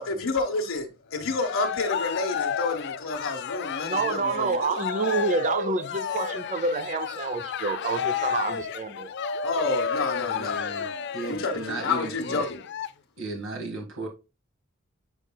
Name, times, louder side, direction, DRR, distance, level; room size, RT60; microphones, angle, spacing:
voice 1, 0.0-4.8 9.4-10.7 11.3-12.6, left 3 dB, 80° left, 1.2 m, -29 dB
Cheering, 1.1-12.9, left 7 dB, 60° left, 0.5 m, -32 dB
voice 2, 3.8-9.1, right 4 dB, 40° right, 0.7 m, -28 dB
voice 3, 6.1-6.4 9.8-12.5 13.2-14.1, right 2 dB, 75° right, 1.6 m, -36 dB
8.1 x 5.3 x 2.3 m
head